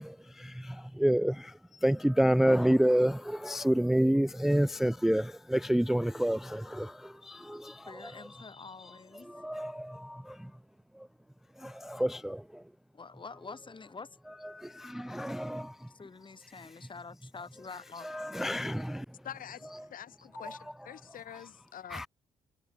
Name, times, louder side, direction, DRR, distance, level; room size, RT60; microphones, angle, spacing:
voice 1, 0.0-8.1 9.3-10.5 11.0-11.1 11.6-12.6 14.5-15.9 18.0-19.1 20.4-20.6 21.9-22.1, right 1 dB, ahead, 0.4 m, -29 dB
voice 2, 7.9-9.3 12.9-14.1 15.9-18.1, left 4 dB, 30° left, 2.4 m, -47 dB
voice 3, 19.2-22.1, left 10 dB, 65° left, 4.3 m, -46 dB
supercardioid pair, 60°, 15 cm